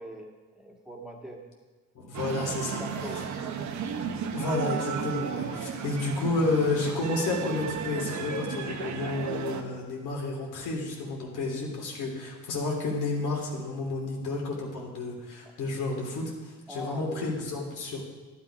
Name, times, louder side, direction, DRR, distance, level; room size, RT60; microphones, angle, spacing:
voice 1, 0.0-1.4 2.4-2.5 2.8-3.2 16.7-17.4, equal, ahead, -1 dB, 1.9 m, -42 dB
voice 2, 1.9-2.8 4.3-18.0, left 3 dB, 85° left, -1 dB, 3.1 m, -31 dB
sound 1, 2.1-9.6, right 7 dB, 70° right, 1.1 m, -34 dB
11.5 x 9.8 x 5.0 m, 1.3 s
cardioid pair, 90°, 30 cm